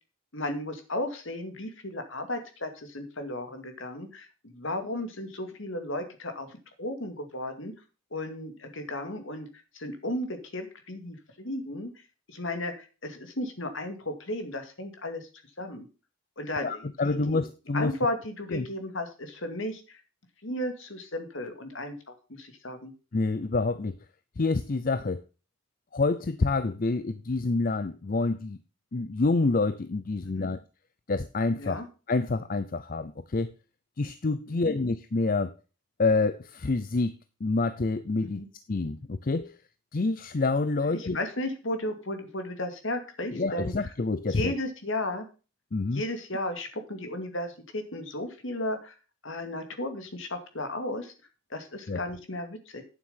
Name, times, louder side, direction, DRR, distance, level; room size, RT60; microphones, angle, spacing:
voice 1, 0.3-7.7 8.1-9.5 9.7-11.9 12.3-15.3 15.6-15.9 16.4-17.4 17.7-20.0 20.4-22.9 30.3-30.5 31.6-31.9 34.5-34.8 38.2-38.5 40.8-43.7 44.3-45.3 45.9-48.9 49.2-51.1 51.5-52.8, left 1 dB, 60° left, 7 dB, 2.3 m, -34 dB
voice 2, 16.6-17.9 18.5-18.7 23.1-24.0 24.4-25.2 25.9-28.6 28.9-30.6 31.1-31.8 32.1-33.5 34.0-35.5 36.0-37.1 37.4-38.4 38.7-39.6 39.9-41.2 43.3-44.6 45.7-46.0 51.9-52.1, left 3 dB, 40° left, 12 dB, 0.5 m, -27 dB
9.1 x 7.6 x 5.6 m, 0.33 s
head